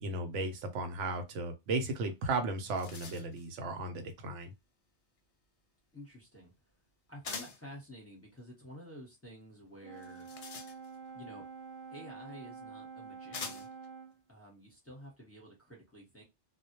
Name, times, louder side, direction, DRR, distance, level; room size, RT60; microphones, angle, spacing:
voice 1, 0.0-4.5, right 3 dB, 90° right, 1.0 m, -35 dB
sound 1, 2.1-2.2 2.5-3.5 7.2-7.7 9.9-11.1 12.2-12.3 13.3-13.9, left 4 dB, 65° left, 0.3 m, -44 dB
voice 2, 5.9-6.5 7.1-10.3 11.1-11.5 11.9-13.7 14.3-16.2, equal, 15° left, 0.8 m, -51 dB
Brass instrument, 9.8-14.2, right 5 dB, 60° right, 0.6 m, -48 dB
2.2 x 2.1 x 2.8 m
omnidirectional pair, 1.2 m